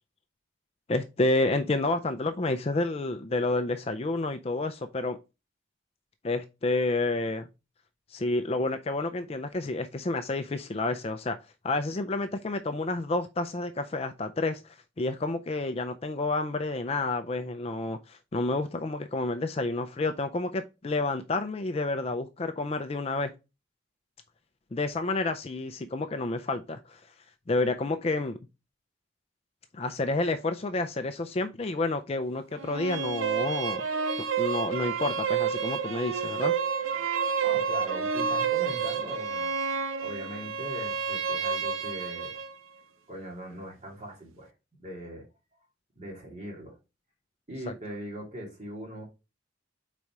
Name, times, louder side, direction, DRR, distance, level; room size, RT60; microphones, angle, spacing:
voice 1, 0.9-5.2 6.2-7.5 8.1-11.4 11.6-23.3 24.7-27.0 27.5-28.4 29.7-33.8 34.4-36.5, left 2 dB, 30° left, 0.4 m, -29 dB
sound 1, 32.6-42.5, right 6 dB, 85° right, 0.8 m, -29 dB
voice 2, 37.4-39.6 40.0-42.4 43.1-44.5 44.8-45.3 45.9-46.8 47.5-49.0, right 1 dB, 35° right, 2.7 m, -40 dB
4.9 x 4.2 x 4.6 m
head